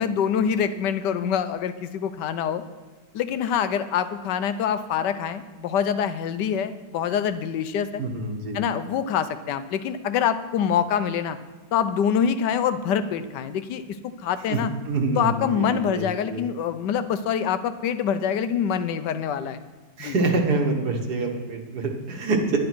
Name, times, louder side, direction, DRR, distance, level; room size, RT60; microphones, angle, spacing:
voice 1, 0.0-2.6 3.1-8.0 8.5-11.4 11.7-14.7 15.2-19.6 20.0-20.1, left 8 dB, 75° left, 11 dB, 1.2 m, -25 dB
voice 2, 8.0-8.6 14.5-14.6 14.9-16.4 20.0-22.6, right 3 dB, 60° right, 3 dB, 2.0 m, -26 dB
10.5 x 10.5 x 6.1 m, 1.4 s
omnidirectional pair, 2.0 m